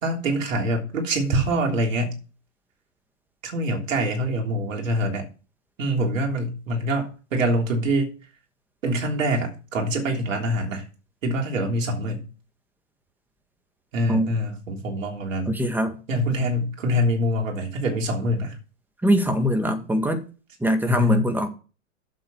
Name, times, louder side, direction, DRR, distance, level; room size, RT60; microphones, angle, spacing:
voice 1, 0.0-2.2 3.4-5.3 5.8-8.1 8.8-10.9 11.2-12.2 13.9-15.6 16.1-18.6 20.9-21.3, equal, 75° right, 3.4 m, -25 dB
voice 2, 15.5-15.9 19.0-20.2 20.6-21.5, equal, 5° right, 1.8 m, -22 dB
7.8 x 7.4 x 6.1 m
hypercardioid pair, 105°, 39 cm